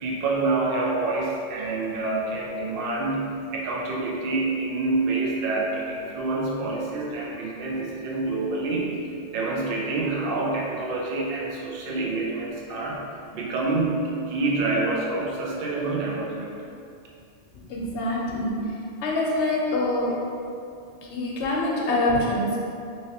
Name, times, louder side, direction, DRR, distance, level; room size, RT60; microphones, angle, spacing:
voice 1, 0.0-8.9 9.3-13.0 13.3-16.5, right 3 dB, 60° right, -3 dB, 0.7 m, -27 dB
voice 2, 17.7-18.5 19.0-20.1 21.1-22.6, left 2 dB, 70° left, -3 dB, 0.8 m, -25 dB
3.1 x 2.8 x 2.7 m, 2.5 s
omnidirectional pair, 1.2 m